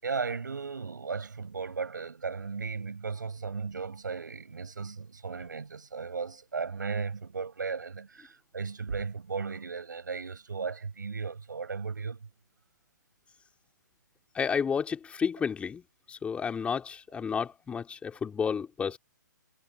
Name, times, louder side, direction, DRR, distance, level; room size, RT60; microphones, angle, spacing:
voice 1, 0.0-12.2, right 5 dB, 75° right, 6.0 m, -36 dB
voice 2, 14.4-15.8 16.1-19.0, left 6 dB, 10° left, 3.6 m, -31 dB
figure-of-eight pair, 125°, 10 cm